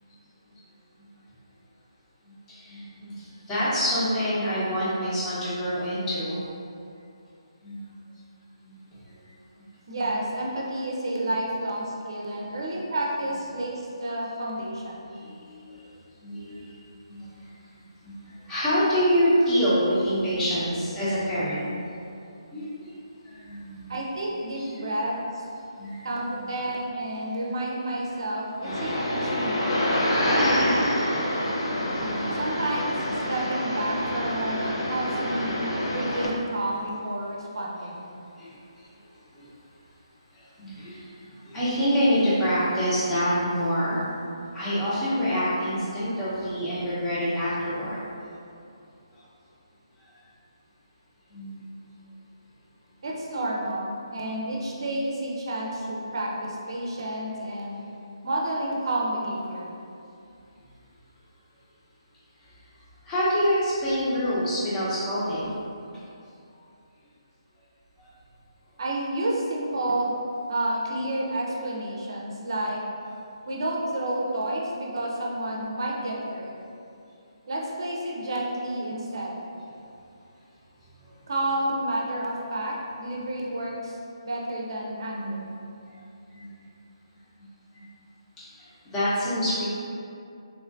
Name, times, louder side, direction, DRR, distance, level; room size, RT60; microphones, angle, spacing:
voice 1, 2.5-6.4 7.6-7.8 8.6-8.8 9.9-10.0 12.4-12.5 15.2-15.6 16.2-16.6 17.1-17.2 18.0-18.1 18.5-21.7 22.5-22.9 23.2-23.9 24.6-24.8 25.7-26.5 28.6-28.8 31.2-31.3 32.0-32.5 36.6-36.7 38.4-38.5 39.4-39.5 40.6-41.0 41.5-44.0 44.5-48.0 51.3-51.5 63.1-65.6 79.1-79.2 85.1-85.5 86.3-86.5 87.7-87.8 88.9-89.7, equal, 15° left, -11 dB, 0.9 m, -26 dB
voice 2, 9.9-15.1 23.9-25.5 26.0-29.9 32.3-35.6 35.9-38.1 53.0-57.8 58.2-59.7 68.8-70.1 70.5-72.8 73.5-76.5 77.5-79.4 81.3-84.0 84.2-85.5, right 1 dB, 55° right, -3 dB, 0.6 m, -30 dB
sound 1, 28.6-36.3, equal, 55° left, 0.6 m, -26 dB
3.5 x 3.0 x 2.6 m, 2.6 s
figure-of-eight pair, 145°, 3 cm